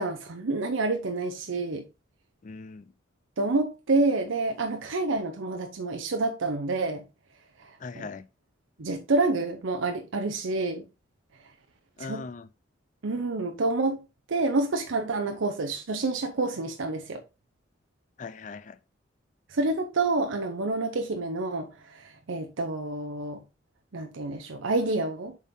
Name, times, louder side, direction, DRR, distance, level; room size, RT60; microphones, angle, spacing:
voice 1, 0.0-1.8 3.4-7.0 7.6-8.1 8.8-10.8 12.0-12.2 13.0-14.0 14.3-17.2 19.5-23.4 23.9-25.4, right 3 dB, 80° right, 0.7 m, -28 dB
voice 2, 2.4-2.9 7.8-8.3 12.0-12.5 18.2-18.8, left 4 dB, 40° left, 0.4 m, -40 dB
7.2 x 4.2 x 3.7 m
head